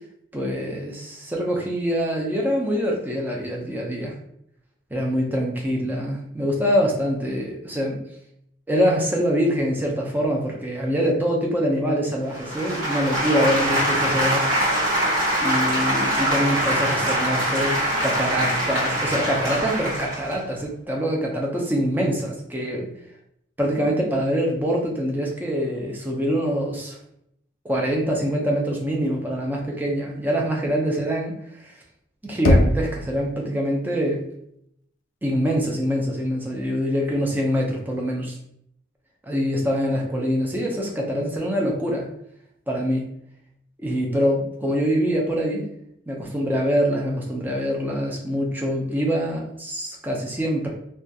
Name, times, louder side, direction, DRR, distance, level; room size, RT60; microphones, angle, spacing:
voice 1, 0.3-4.2 4.9-8.0 8.7-14.5 15.4-22.9 23.6-27.0 27.6-31.7 32.2-34.2 35.2-38.4 39.2-42.1 42.7-43.0 43.8-45.6 46.1-50.7, equal, 10° right, -1 dB, 0.4 m, -24 dB
sound 1, 12.3-20.4, right 1 dB, 80° right, 1.0 m, -23 dB
Knock, 32.4-33.4, left 1 dB, 65° left, 0.3 m, -20 dB
2.3 x 2.2 x 2.6 m, 0.73 s
head